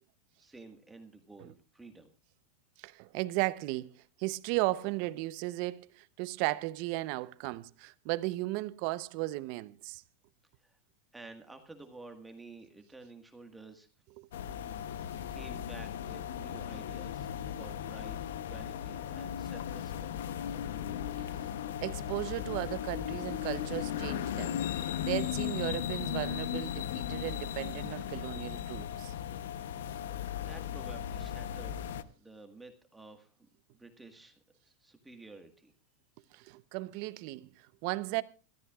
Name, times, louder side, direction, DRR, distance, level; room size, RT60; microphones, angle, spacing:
voice 1, 0.4-2.1 10.6-10.8 11.1-13.9 14.8-15.0 15.3-18.2 18.5-20.1 30.4-31.8 32.1-33.3 33.7-34.4 34.6-35.7, right 3 dB, 5° right, 1.7 m, -51 dB
voice 2, 2.8-10.0 14.2-14.3 21.4-21.5 21.8-29.1 36.3-38.2, right 19 dB, 55° right, 0.8 m, -36 dB
sound 1, 14.3-32.0, left 10 dB, 80° left, 0.9 m, -37 dB
26.0 x 13.5 x 2.4 m
supercardioid pair, 135°, 0 cm